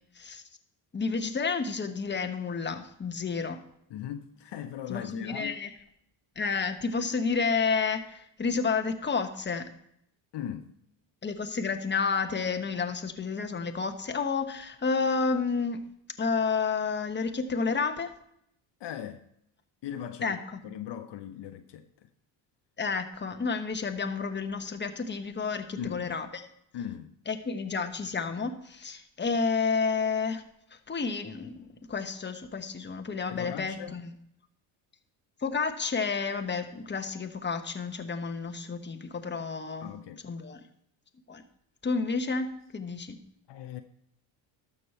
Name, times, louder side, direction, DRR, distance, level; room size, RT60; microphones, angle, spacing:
voice 1, 0.9-3.6 4.9-5.7 6.4-9.7 11.2-15.8 16.2-18.1 20.2-20.4 22.8-26.4 27.3-30.4 30.9-34.1 35.4-39.9 40.2-40.6 41.3-41.4 41.8-43.2, left 5 dB, 20° left, 1.1 m, -30 dB
voice 2, 3.9-5.6 10.3-10.7 18.8-19.2 19.8-22.1 25.8-26.1 26.7-27.1 33.3-33.9 39.8-40.2 43.5-43.8, left 10 dB, 55° left, 0.8 m, -39 dB
12.5 x 6.6 x 4.4 m
supercardioid pair, 80°, 50 cm